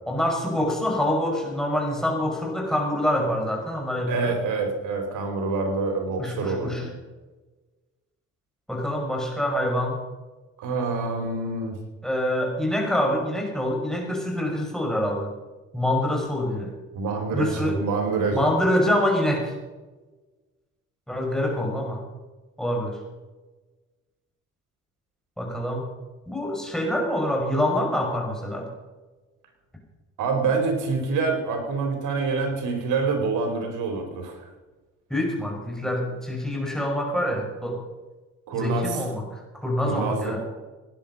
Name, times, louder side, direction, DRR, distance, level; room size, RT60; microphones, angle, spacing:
voice 1, 0.1-4.3 6.2-6.8 8.7-10.0 12.0-15.3 15.7-16.7 17.3-17.8 18.3-19.5 21.1-22.0 22.6-23.0 25.4-25.8 26.3-28.7 35.1-37.8 38.6-40.4, left 1 dB, ahead, 0 dB, 5.6 m, -25 dB
voice 2, 4.1-6.9 10.6-11.8 16.9-18.5 30.2-34.4 38.5-39.1 39.8-40.4, right 4 dB, 85° right, 4 dB, 3.9 m, -26 dB
18.5 x 10.5 x 5.4 m, 1.2 s
cardioid pair, 90°, 30 cm